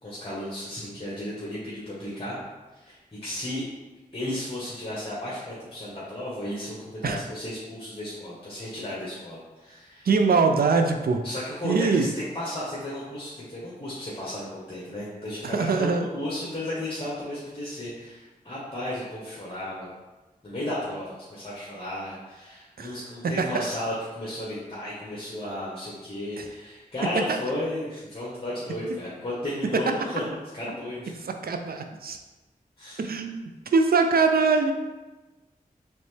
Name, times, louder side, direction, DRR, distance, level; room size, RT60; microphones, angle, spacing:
voice 1, 0.0-2.4 2.7-3.0 3.2-3.6 4.1-10.1 11.2-19.9 20.4-30.2 30.5-31.2 32.8-33.1, left 1 dB, 35° left, -7 dB, 1.2 m, -34 dB
voice 2, 10.0-11.2 11.6-12.1 15.4-16.1 22.8-22.9 23.2-23.7 26.4-26.5 27.3-27.4 29.7-29.8 31.2-32.2 33.0-34.7, right 4 dB, 75° right, 6 dB, 0.4 m, -23 dB
4.0 x 3.3 x 3.3 m, 1.2 s
cardioid pair, 40°, 16 cm